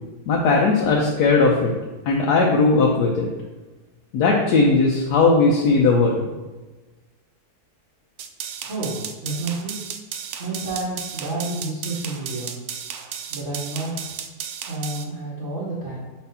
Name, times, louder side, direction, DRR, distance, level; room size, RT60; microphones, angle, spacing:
voice 1, 0.3-1.7 2.1-3.3 4.1-6.2, left 3 dB, 85° left, -1 dB, 1.3 m, -18 dB
sound 1, 8.2-15.0, right 8 dB, 70° right, 0.7 m, -34 dB
voice 2, 8.6-9.8 10.4-12.6 13.3-13.9 14.7-16.0, right 2 dB, 50° right, -8 dB, 1.6 m, -30 dB
4.6 x 4.3 x 5.4 m, 1.2 s
omnidirectional pair, 1.7 m